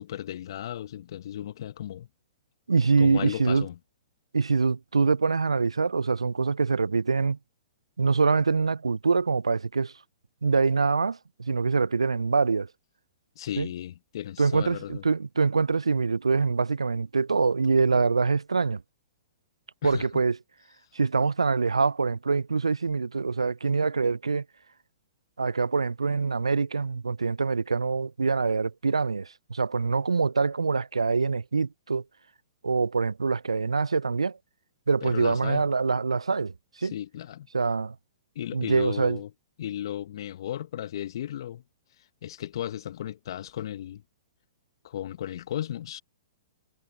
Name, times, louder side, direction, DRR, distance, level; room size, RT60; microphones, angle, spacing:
voice 1, 0.0-2.1 3.0-3.8 13.3-15.0 19.8-20.1 35.0-35.6 36.8-37.5 38.3-39.3 39.6-41.6 42.2-44.0 44.8-46.0, left 11 dB, 55° left, 1.3 m, -35 dB
voice 2, 2.7-3.7 4.3-7.4 8.0-9.9 10.4-12.7 13.6-13.7 14.4-18.8 19.8-20.4 20.9-24.4 25.4-32.0 32.6-34.4 34.9-36.5 36.8-36.9 37.5-38.0 38.5-39.2, right 4 dB, 85° right, 0.5 m, -24 dB
figure-of-eight pair, 115°, 3 cm